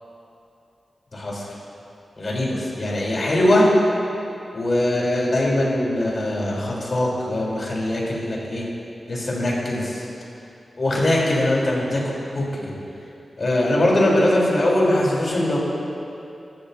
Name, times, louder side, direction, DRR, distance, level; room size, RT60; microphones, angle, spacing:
voice 1, 1.1-1.5 2.2-3.7 4.5-8.7 9.1-10.1 10.8-12.7 13.4-15.6, left 1 dB, 45° left, -5 dB, 4.3 m, -21 dB
25.0 x 13.5 x 2.9 m, 2.7 s
wide cardioid pair, 130°, 0 cm